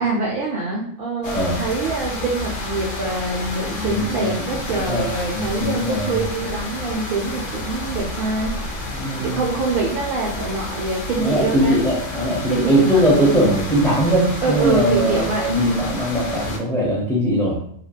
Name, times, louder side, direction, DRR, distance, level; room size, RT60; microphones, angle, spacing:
voice 1, 0.0-8.8 9.1-11.8 12.5-13.1 14.4-15.6, right 3 dB, 65° right, -3 dB, 0.7 m, -25 dB
sound 1, 1.2-16.6, left 2 dB, 75° left, 0.9 m, -30 dB
voice 2, 1.2-1.6 3.8-4.3 4.9-5.0 5.3-6.1 8.9-9.4 11.2-17.6, equal, 5° left, -4 dB, 0.3 m, -20 dB
2.8 x 2.5 x 2.2 m, 0.66 s
omnidirectional pair, 1.2 m